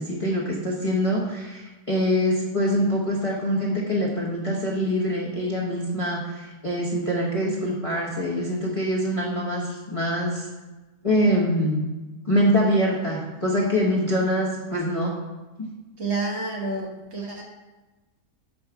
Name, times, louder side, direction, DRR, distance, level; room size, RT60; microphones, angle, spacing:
voice 1, 0.0-10.5 11.0-11.8 12.2-15.1 15.6-15.7, equal, 25° left, -4 dB, 0.8 m, -24 dB
voice 2, 16.0-17.4, right 3 dB, 50° right, -1 dB, 1.3 m, -29 dB
5.4 x 4.6 x 5.8 m, 1.2 s
omnidirectional pair, 1.6 m